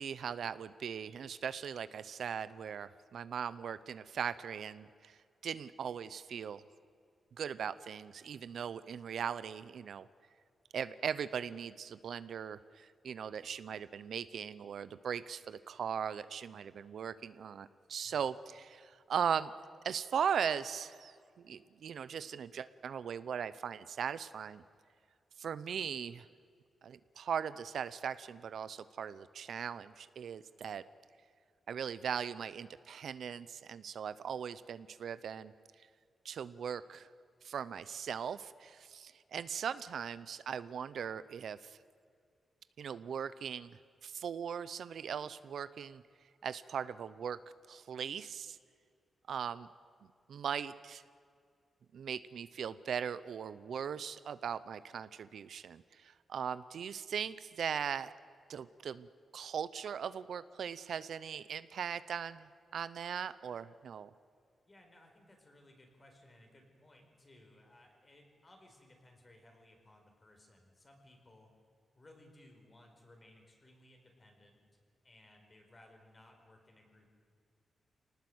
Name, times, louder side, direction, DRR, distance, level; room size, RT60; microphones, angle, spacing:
voice 1, 0.0-6.6 7.4-10.1 10.7-19.5 19.8-24.6 25.4-26.3 26.8-30.8 31.7-35.5 36.2-37.1 37.4-41.8 42.8-46.0 46.4-47.4 47.7-48.6 49.3-49.7 50.3-51.0 51.9-58.1 58.5-59.1 59.3-64.1, right 7 dB, 70° right, 15 dB, 0.7 m, -39 dB
voice 2, 64.6-71.5 71.9-77.1, left 1 dB, 25° left, 3 dB, 4.7 m, -61 dB
26.5 x 19.0 x 8.0 m, 2.3 s
wide cardioid pair, 145°, 0 cm